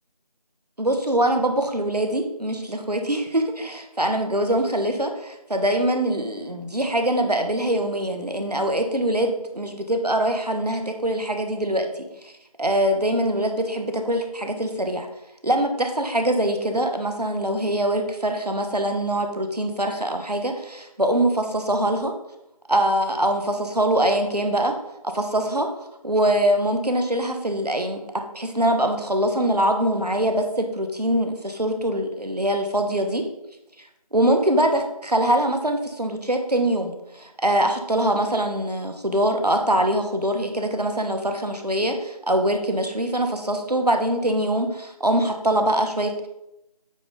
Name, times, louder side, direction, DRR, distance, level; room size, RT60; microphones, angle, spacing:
voice 1, 0.8-12.3 12.6-15.1 15.4-22.1 22.7-24.7 25.0-25.7 26.0-28.0 28.3-33.2 34.1-46.3, right 1 dB, 75° right, 5 dB, 1.3 m, -23 dB
9.1 x 4.4 x 3.9 m, 0.87 s
figure-of-eight pair, 175°, 20 cm